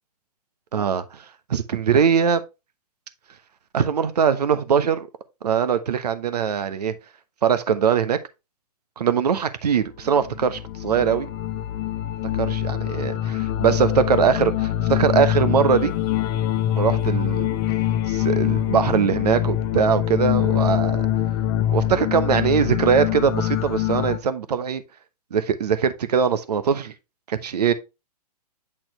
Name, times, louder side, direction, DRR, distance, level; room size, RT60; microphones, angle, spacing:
voice 1, 0.7-1.2 1.5-2.4 3.7-5.1 5.4-6.9 7.4-8.2 9.0-11.3 12.3-15.9 16.8-17.6 18.1-21.0 21.7-24.8 25.3-26.9 27.3-27.7, right 7 dB, 75° right, 1.0 m, -21 dB
sound 1, 10.1-24.2, left 12 dB, 40° left, 0.8 m, -24 dB
8.7 x 4.4 x 3.1 m
hypercardioid pair, 135°, 20 cm